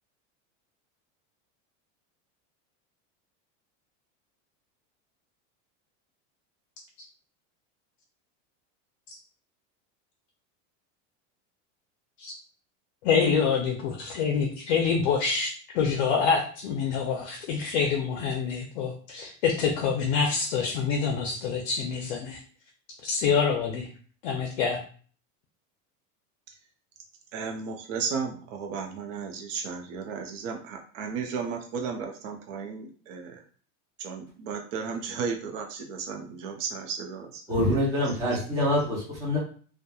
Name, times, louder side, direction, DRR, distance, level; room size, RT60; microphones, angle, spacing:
voice 1, 13.0-15.5 15.7-22.4 23.1-23.9 24.2-24.8, left 6 dB, 60° left, 1 dB, 0.5 m, -26 dB
voice 2, 27.3-33.4 34.0-37.4, right 5 dB, 75° right, 3 dB, 0.6 m, -34 dB
voice 3, 37.5-39.4, left 1 dB, 10° right, -6 dB, 0.5 m, -25 dB
2.8 x 2.2 x 2.2 m, 0.43 s
supercardioid pair, 175°, 37 cm